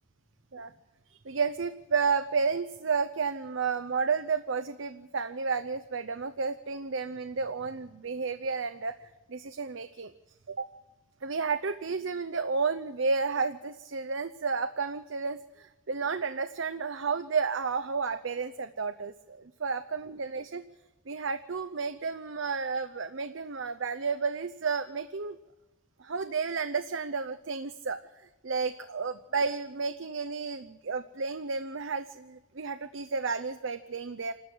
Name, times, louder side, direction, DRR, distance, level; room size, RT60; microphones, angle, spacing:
voice 1, 1.1-10.1 10.5-10.7 11.2-20.6 21.1-25.4 26.0-28.0 28.4-34.3, right 5 dB, 70° right, 9 dB, 0.7 m, -32 dB
27.5 x 13.0 x 7.9 m, 1.1 s
head